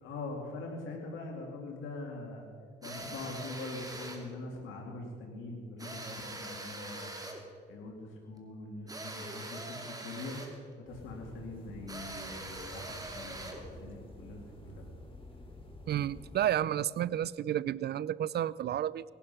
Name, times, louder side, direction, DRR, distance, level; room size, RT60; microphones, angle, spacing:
voice 1, 0.0-2.4 2.8-7.1 7.7-10.4 10.9-14.8, left 2 dB, 85° left, 0 dB, 2.3 m, -43 dB
sound 1, 2.8-4.3 5.8-7.5 8.9-10.6 11.9-13.7, right 2 dB, 20° right, 2.4 m, -43 dB
sound 2, 10.9-16.4, left 1 dB, 25° left, 3.9 m, -50 dB
voice 2, 15.9-19.0, right 11 dB, 55° right, 20 dB, 0.4 m, -31 dB
18.5 x 11.5 x 5.7 m, 2.1 s
cardioid pair, 90°, 20 cm